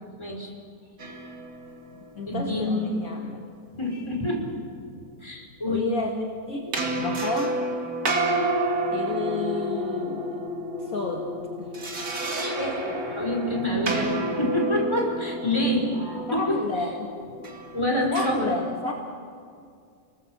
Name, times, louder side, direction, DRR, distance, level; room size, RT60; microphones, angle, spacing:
voice 1, 0.2-0.5 2.3-2.7 3.8-4.4 5.2-5.9 12.6-16.6 17.7-18.5, left 1 dB, 15° left, 0 dB, 4.8 m, -27 dB
sound 1, 1.0-3.1 6.7-18.3, right 1 dB, 55° right, 3.0 m, -30 dB
voice 2, 2.2-3.4 5.7-7.6 8.9-10.5 10.8-11.3 11.6-11.9 12.9-13.0 16.3-17.1 18.1-18.9, left 3 dB, 50° left, 1 dB, 2.2 m, -31 dB
29.5 x 19.5 x 7.8 m, 2.3 s
omnidirectional pair, 1.9 m